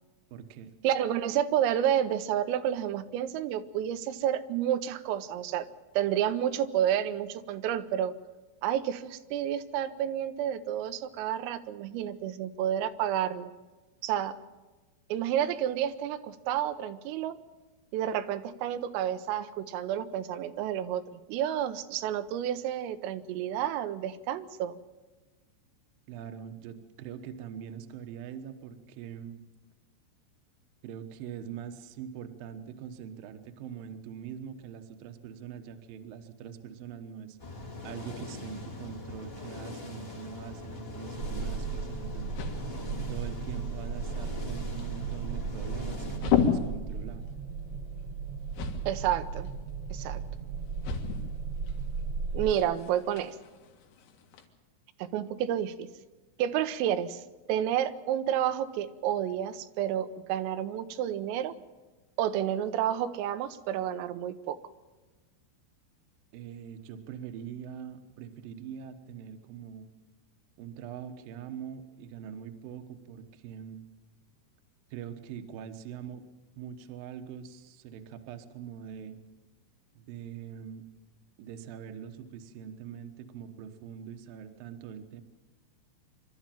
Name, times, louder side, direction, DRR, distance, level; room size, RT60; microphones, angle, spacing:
voice 1, 0.3-0.7 26.1-29.4 30.8-37.4 37.8-42.4 43.1-47.3 66.3-69.9 70.6-73.8 74.9-76.2 76.6-79.2 80.0-80.9 81.4-85.2, right 8 dB, 70° right, 7 dB, 2.2 m, -43 dB
voice 2, 0.8-5.7 6.0-8.1 8.6-13.5 14.0-14.4 15.1-17.4 17.9-24.8 48.9-49.5 49.9-50.2 52.3-53.4 55.0-55.9 56.4-57.2 57.5-61.5 62.2-64.6, right 10 dB, 90° right, 10 dB, 3.6 m, -30 dB
sound 1, 37.4-46.2, left 3 dB, 40° left, 0.8 m, -42 dB
sound 2, 41.2-52.5, right 5 dB, 55° right, 1.8 m, -36 dB
sound 3, 41.9-54.5, left 7 dB, 85° left, 4.5 m, -36 dB
26.0 x 12.5 x 9.1 m, 1.2 s
omnidirectional pair, 5.8 m